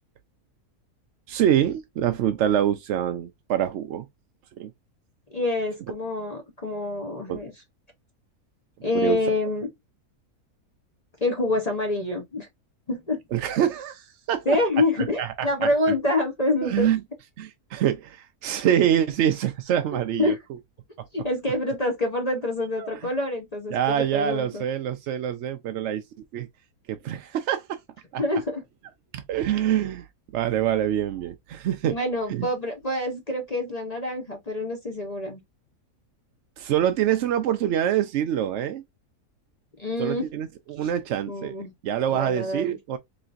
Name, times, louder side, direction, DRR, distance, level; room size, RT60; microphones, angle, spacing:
voice 1, 1.3-4.1 4.6-4.7 7.3-7.4 8.9-9.3 13.3-14.6 15.2-15.7 16.6-17.0 17.4-20.3 22.8-23.1 23.7-26.0 26.3-26.5 26.9-27.8 28.1-28.2 29.1-30.1 30.3-32.0 32.3-32.5 36.6-38.8 40.0-41.5 41.8-43.0, right 10 dB, 70° right, 0.7 m, -25 dB
voice 2, 5.3-7.5 8.8-9.7 11.2-12.5 12.9-13.2 14.5-16.9 19.9-20.4 21.1-24.6 28.2-28.6 31.8-35.4 39.8-40.3 41.3-41.7 42.1-42.8, left 2 dB, 30° left, 0.8 m, -26 dB
4.0 x 3.2 x 2.5 m
omnidirectional pair, 1.6 m